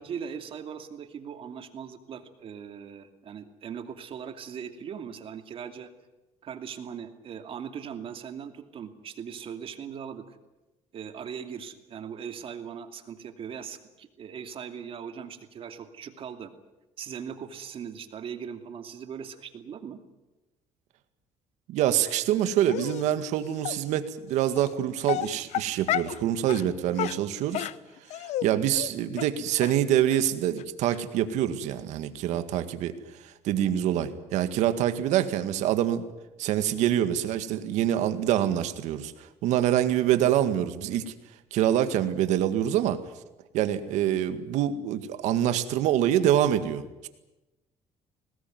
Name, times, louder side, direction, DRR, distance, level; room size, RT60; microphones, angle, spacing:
voice 1, 0.0-5.9 6.4-10.4 10.9-16.5 17.0-20.0, right 7 dB, 50° right, 7 dB, 2.6 m, -39 dB
voice 2, 21.7-27.7 28.4-32.9 33.4-36.0 36.4-41.1 41.5-43.0 43.5-47.1, right 11 dB, 85° right, 10 dB, 2.0 m, -25 dB
Dog, 22.7-23.0 23.6-23.8 24.6-24.7 25.0-26.2 26.5-26.6 27.0-28.5 28.7-28.9 29.2-29.3 29.6-29.7 30.1-30.2 30.6-30.7 30.9-31.0, left 14 dB, 70° left, 0.9 m, -31 dB
23.0 x 19.0 x 9.5 m, 1.1 s
cardioid pair, 115°, 12 cm